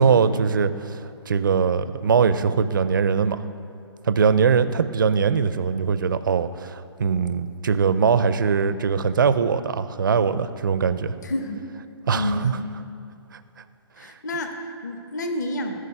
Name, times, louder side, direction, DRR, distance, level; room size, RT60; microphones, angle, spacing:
voice 1, 0.0-3.4 4.0-11.1 12.1-12.6 14.0-14.1, right 6 dB, 45° right, 13 dB, 0.4 m, -21 dB
voice 2, 11.2-11.6 12.1-12.6 14.0-15.8, left 1 dB, 40° left, 5 dB, 0.8 m, -29 dB
14.0 x 4.8 x 5.7 m, 2.8 s
hypercardioid pair, 180°, 15 cm